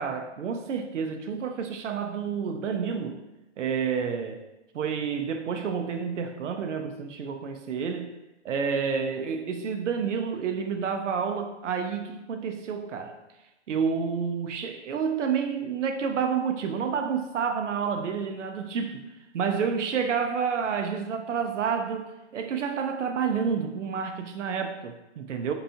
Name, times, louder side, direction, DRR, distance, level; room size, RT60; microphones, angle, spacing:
voice 1, 0.0-3.2 3.6-4.4 4.7-8.1 8.4-13.2 13.7-19.0 19.3-25.5, right 6 dB, 80° right, 6 dB, 0.5 m, -29 dB
4.5 x 2.8 x 2.7 m, 1.0 s
hypercardioid pair, 160°, 36 cm